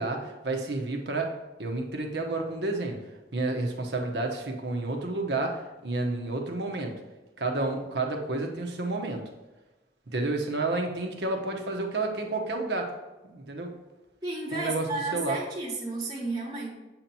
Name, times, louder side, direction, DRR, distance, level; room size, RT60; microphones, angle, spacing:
voice 1, 0.0-1.3 1.6-3.0 3.3-6.9 7.4-9.2 10.1-12.9 13.2-13.7 14.5-15.4, right 2 dB, 65° right, 2 dB, 1.0 m, -30 dB
voice 2, 14.2-16.8, right 2 dB, 20° right, -3 dB, 1.2 m, -32 dB
8.1 x 3.0 x 5.4 m, 1.1 s
head